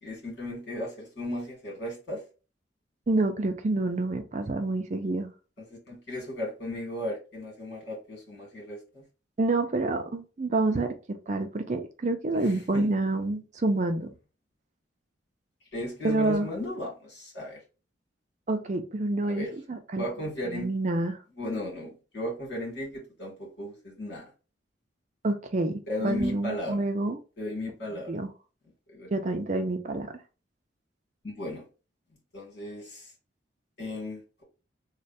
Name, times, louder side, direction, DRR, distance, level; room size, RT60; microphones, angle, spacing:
voice 1, 0.0-2.2 5.7-9.0 12.3-12.9 15.7-17.6 19.2-19.5 20.0-20.7 21.4-24.3 25.9-26.8 27.4-28.2 28.9-29.1 31.2-31.6 32.3-33.1 33.8-34.4, left 1 dB, 65° left, -2 dB, 2.1 m, -35 dB
voice 2, 3.1-5.3 9.4-14.1 16.0-16.5 18.5-20.0 20.5-21.2 25.2-27.2 28.1-28.3 29.1-30.1, right 2 dB, 40° right, 7 dB, 0.4 m, -28 dB
3.2 x 2.2 x 4.1 m, 0.33 s
head